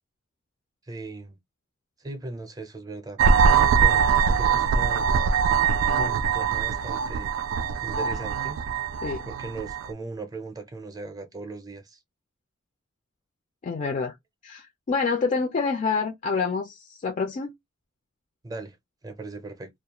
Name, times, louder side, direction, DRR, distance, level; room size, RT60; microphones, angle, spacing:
voice 1, 0.9-1.4 2.0-3.2 3.8-5.0 6.0-7.3 7.8-8.6 9.3-12.0 18.4-18.8 19.0-19.7, right 2 dB, 20° right, 0.5 m, -38 dB
sound 1, 3.2-9.9, right 6 dB, 85° right, 0.3 m, -22 dB
voice 2, 13.6-14.1 14.4-17.5, left 4 dB, 40° left, 0.4 m, -27 dB
2.3 x 2.1 x 2.9 m
head